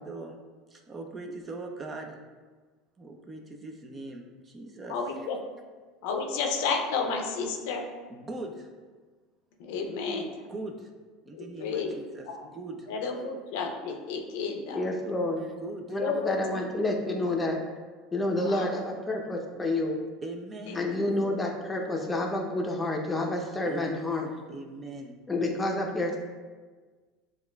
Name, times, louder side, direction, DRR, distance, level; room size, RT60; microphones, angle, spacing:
voice 1, 0.1-0.4 0.7-2.2 3.0-5.0 8.1-8.7 10.5-10.9 11.3-12.3 12.5-12.9 15.6-16.0 20.2-20.8 23.6-25.2, right 2 dB, 25° right, 3 dB, 0.5 m, -40 dB
voice 2, 4.9-5.4 6.0-7.8 9.6-10.3 11.3-11.9 12.2-12.5 12.9-14.9 16.0-16.9 18.3-18.7 20.7-20.8, left 4 dB, 75° left, 3 dB, 0.5 m, -32 dB
voice 3, 14.7-15.4 15.9-17.6 18.1-20.0 20.7-24.3 25.3-26.2, left 2 dB, 15° left, 1 dB, 0.7 m, -29 dB
7.0 x 2.4 x 2.3 m, 1.4 s
supercardioid pair, 100°, 0 cm